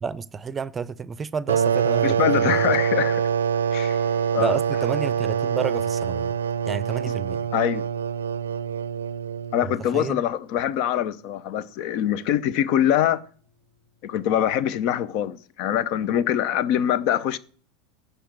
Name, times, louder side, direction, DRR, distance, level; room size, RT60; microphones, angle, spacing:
voice 1, 0.0-2.7 4.4-6.4 6.7-7.5 9.6-10.2, right 6 dB, 25° right, 0.5 m, -30 dB
sound 1, 1.5-9.9, right 8 dB, 85° right, 0.5 m, -25 dB
voice 2, 2.0-3.3 3.7-4.0 4.3-4.6 7.0-7.1 7.5-7.9 9.5-13.2 14.0-17.4, left 10 dB, 55° left, 0.6 m, -24 dB
sound 2, 3.8-14.3, equal, 80° left, 4.7 m, -51 dB
10.0 x 5.5 x 7.1 m
hypercardioid pair, 85°, 0 cm